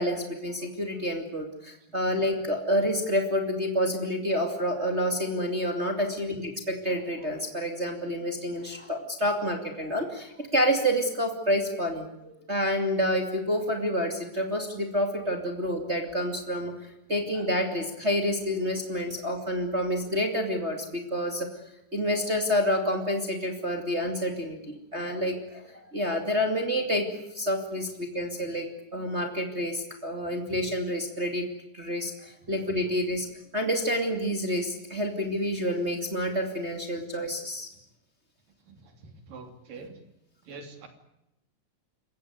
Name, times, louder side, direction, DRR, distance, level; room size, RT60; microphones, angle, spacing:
voice 1, 0.0-16.7 17.1-21.5 21.9-27.1 27.3-28.7 28.9-31.4 31.7-33.3 33.5-37.7, equal, 20° right, 3 dB, 2.5 m, -28 dB
voice 2, 38.7-40.0 40.5-40.9, right 4 dB, 90° right, 6 dB, 4.7 m, -45 dB
28.5 x 15.5 x 9.6 m, 0.86 s
omnidirectional pair, 3.8 m